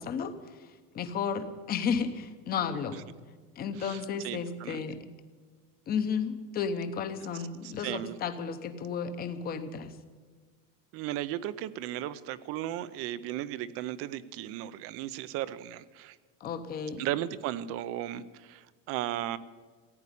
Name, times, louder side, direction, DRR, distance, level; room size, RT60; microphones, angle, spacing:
voice 1, 0.0-3.0 3.6-5.0 5.9-10.0 16.4-17.1, left 6 dB, 25° left, 10 dB, 0.9 m, -33 dB
voice 2, 3.8-4.8 7.6-8.2 10.9-16.2 17.0-19.4, right 13 dB, 35° right, 16 dB, 0.5 m, -36 dB
15.5 x 9.6 x 9.8 m, 1.5 s
cardioid pair, 175°, 40 cm